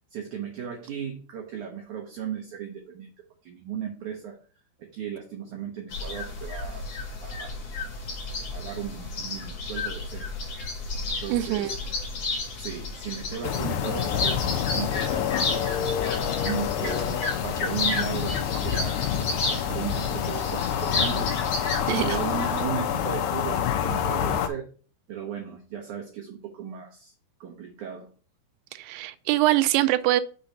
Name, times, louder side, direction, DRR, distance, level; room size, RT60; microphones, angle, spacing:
voice 1, 0.1-3.1 3.4-4.4 4.8-6.9 7.2-7.5 8.5-10.3 11.0-11.8 12.6-15.8 16.4-21.4 21.9-24.7 25.1-27.1 27.4-28.1, right 8 dB, 65° right, 0 dB, 2.1 m, -36 dB
sound 1, 5.9-22.6, left 3 dB, 50° left, 2.2 m, -32 dB
voice 2, 11.3-11.8 21.9-22.2 28.7-30.2, right 15 dB, 90° right, 11 dB, 2.7 m, -23 dB
sound 2, 13.4-24.5, left 9 dB, 85° left, 2.7 m, -27 dB
6.8 x 3.9 x 5.6 m, 0.39 s
omnidirectional pair, 4.6 m